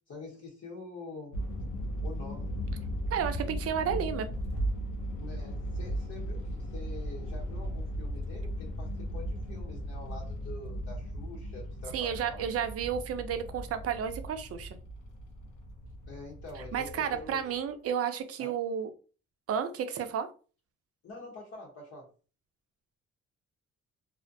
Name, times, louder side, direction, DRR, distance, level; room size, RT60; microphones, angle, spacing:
voice 1, 0.0-1.4 2.0-2.5 5.2-12.5 16.1-17.5 18.4-18.5 21.0-22.1, left 3 dB, 55° left, -3 dB, 0.9 m, -46 dB
sound 1, 1.3-17.5, equal, 80° left, 0.7 m, -37 dB
voice 2, 3.1-4.4 11.9-14.7 16.7-18.9 19.5-20.3, right 8 dB, 50° right, 9 dB, 0.5 m, -32 dB
2.4 x 2.1 x 2.6 m, 0.36 s
cardioid pair, 90°, 30 cm